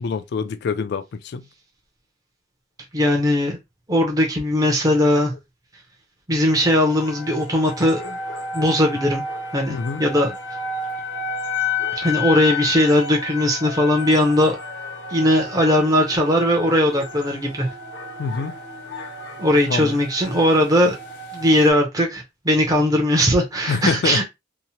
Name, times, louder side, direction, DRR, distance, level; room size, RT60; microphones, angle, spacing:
voice 1, 0.0-1.4 9.7-10.0 18.2-18.5 19.7-19.9 23.7-24.2, left 5 dB, 60° left, 0.3 m, -25 dB
voice 2, 2.9-3.6 3.9-5.3 6.3-8.2 8.5-9.2 9.5-10.3 12.0-14.6 15.1-17.7 19.4-21.0 21.3-24.2, left 1 dB, 20° right, 0.6 m, -19 dB
sound 1, 6.5-21.7, left 4 dB, 85° left, 0.8 m, -31 dB
2.8 x 2.1 x 2.8 m
head